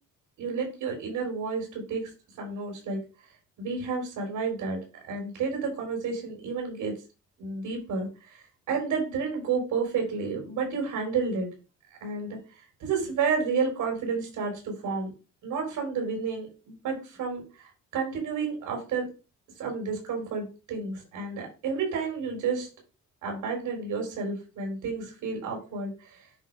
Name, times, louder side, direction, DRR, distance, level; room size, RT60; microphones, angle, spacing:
voice 1, 0.4-2.1 2.4-3.0 3.6-6.9 7.4-11.5 12.0-12.4 12.8-15.1 15.4-19.1 19.6-22.7 23.2-26.2, right 5 dB, 90° right, 1 dB, 4.8 m, -31 dB
10.0 x 3.4 x 5.0 m, 0.32 s
cardioid pair, 90°, 30 cm